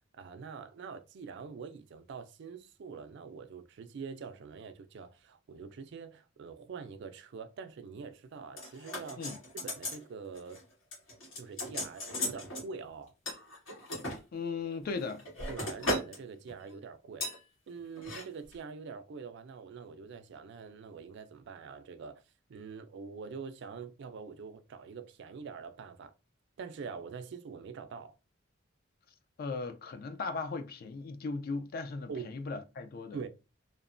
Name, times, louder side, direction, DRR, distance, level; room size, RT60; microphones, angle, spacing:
voice 1, 0.1-10.6 11.4-13.1 15.5-17.3 17.7-22.2 22.5-26.1 26.6-28.2 32.1-32.4 33.1-33.3, right 5 dB, 60° right, 0.4 m, -45 dB
sound 1, 8.6-10.0 10.3-10.6 10.9-12.7 13.3-14.2 14.8-16.2 16.5-16.7 17.2-17.4 18.0-18.2 18.5-18.6, left 1 dB, 85° left, 1.6 m, -37 dB
voice 2, 14.3-15.3 29.4-33.2, left 4 dB, 50° left, 0.4 m, -37 dB
2.9 x 2.1 x 2.5 m
head